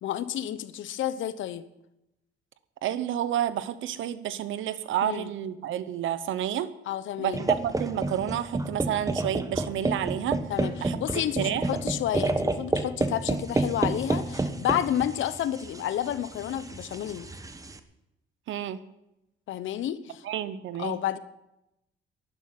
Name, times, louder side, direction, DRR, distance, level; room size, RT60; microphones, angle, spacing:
voice 1, 0.0-1.7 5.0-5.3 6.9-7.5 10.5-17.3 19.5-20.2 20.8-21.2, left 11 dB, 75° left, 14 dB, 1.0 m, -30 dB
voice 2, 2.8-6.7 7.2-10.4 10.8-11.7 18.5-18.8 20.2-21.0, right 11 dB, 80° right, 14 dB, 1.0 m, -30 dB
sound 1, 7.3-17.8, right 2 dB, 15° right, 1.2 m, -30 dB
11.0 x 10.5 x 9.5 m, 0.89 s
cardioid pair, 90°, 20 cm